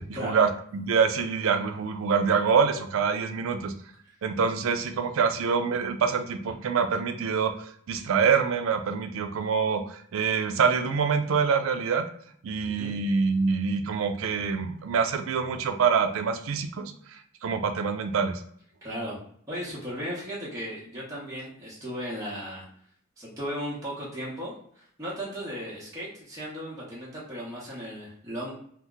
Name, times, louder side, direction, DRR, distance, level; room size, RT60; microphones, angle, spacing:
voice 1, 0.2-3.7 4.2-12.0 12.4-16.9 17.4-18.4, right 6 dB, 80° right, 8 dB, 0.4 m, -25 dB
voice 2, 12.7-13.0 18.8-19.2 19.5-22.7 23.2-28.5, equal, 15° right, -7 dB, 0.8 m, -36 dB
2.8 x 2.1 x 3.6 m, 0.62 s
head